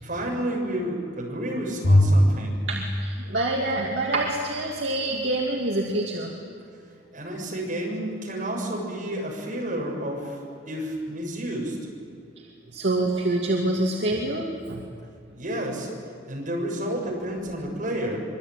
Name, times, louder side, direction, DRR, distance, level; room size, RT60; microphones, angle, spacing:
voice 1, 0.0-2.6 7.1-10.4 10.7-11.8 15.3-15.9 16.3-18.2, right 1 dB, 45° right, -1 dB, 7.1 m, -30 dB
Bowed string instrument, 1.8-4.2, left 1 dB, 70° left, 2.1 m, -23 dB
voice 2, 2.7-6.3 12.7-14.8, right 2 dB, 65° right, -2 dB, 2.7 m, -26 dB
25.5 x 23.5 x 9.3 m, 2.2 s
head